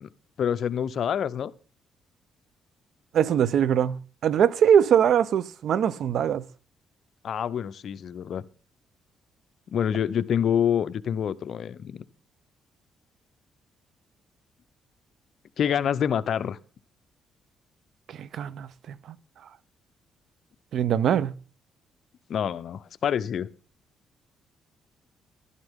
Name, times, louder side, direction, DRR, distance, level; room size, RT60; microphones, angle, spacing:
voice 1, 0.4-1.5 7.2-8.4 9.7-12.0 15.6-16.6 22.3-23.5, left 8 dB, 60° left, 0.6 m, -26 dB
voice 2, 3.1-6.4 18.1-19.2 20.7-21.3, right 8 dB, 65° right, 0.6 m, -22 dB
12.5 x 11.0 x 3.6 m
cardioid pair, 90°, 0 cm